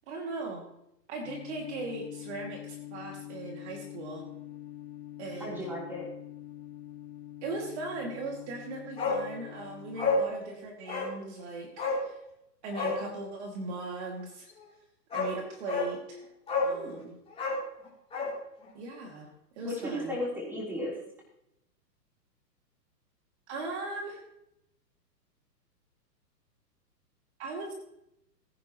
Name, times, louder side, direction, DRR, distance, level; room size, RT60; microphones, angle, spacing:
voice 1, 0.1-0.6 1.1-4.2 5.2-5.7 7.4-12.2 12.6-14.5 15.1-16.2 16.6-17.2 18.7-19.3 19.6-20.1 23.5-24.2 27.4-27.7, right 2 dB, 40° right, 1 dB, 2.4 m, -38 dB
sound 1, 1.2-10.2, left 13 dB, 60° left, 2.0 m, -45 dB
voice 2, 5.4-6.1 16.7-17.1 19.6-21.0, left 1 dB, 5° right, -4 dB, 3.6 m, -35 dB
Bark, 9.0-9.2 9.5-9.6 10.0-10.3 10.9-11.1 11.8-12.0 12.7-13.0 14.6-14.7 15.1-15.3 15.7-15.9 16.5-16.8 17.3-18.4 18.6-18.7, left 3 dB, 10° left, 3.8 m, -29 dB
20.0 x 10.0 x 3.0 m, 0.81 s
hypercardioid pair, 150°, 50 cm